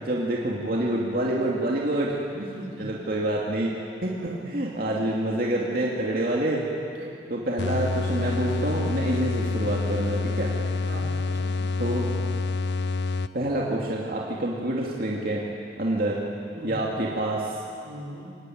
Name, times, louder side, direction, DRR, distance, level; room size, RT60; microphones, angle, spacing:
voice 1, 0.0-2.5 2.8-3.7 4.0-6.6 7.3-10.5 11.8-12.1 13.3-15.4 15.8-16.2 16.6-17.4, right 1 dB, 50° right, -4 dB, 2.6 m, -27 dB
voice 2, 2.4-2.9 4.1-4.5 6.9-7.6 10.8-11.6 16.5-17.0 17.8-18.3, right 1 dB, 80° right, -2 dB, 4.3 m, -40 dB
sound 1, 7.6-13.7, left 3 dB, 65° left, 0.6 m, -28 dB
24.0 x 18.5 x 9.3 m, 2.5 s
head